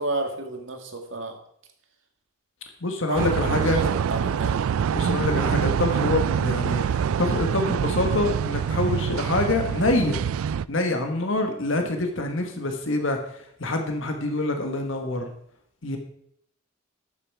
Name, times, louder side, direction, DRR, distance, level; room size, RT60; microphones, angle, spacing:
voice 1, 0.0-1.4 3.1-4.6 11.7-11.9, right 2 dB, 65° right, 4 dB, 1.8 m, -31 dB
voice 2, 2.8-3.8 4.9-10.2 10.7-15.3 15.8-16.0, left 2 dB, 70° left, 4 dB, 1.4 m, -26 dB
sound 1, 3.2-10.7, right 7 dB, 90° right, 0.3 m, -25 dB
12.0 x 7.0 x 4.7 m, 0.70 s
head